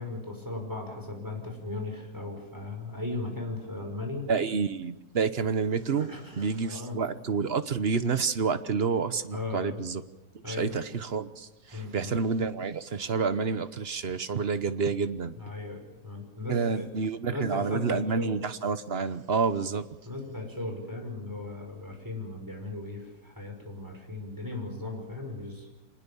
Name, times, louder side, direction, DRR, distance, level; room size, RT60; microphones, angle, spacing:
voice 1, 0.0-4.2 6.0-7.0 9.3-9.8 10.4-10.8 11.7-12.1 15.4-16.9 17.3-18.3 20.0-25.8, left 2 dB, 10° right, 3 dB, 5.6 m, -37 dB
voice 2, 4.3-6.1 6.3-10.0 10.5-15.3 16.5-19.9, right 5 dB, 40° right, 12 dB, 1.0 m, -29 dB
25.5 x 20.0 x 7.1 m, 1.0 s
omnidirectional pair, 2.0 m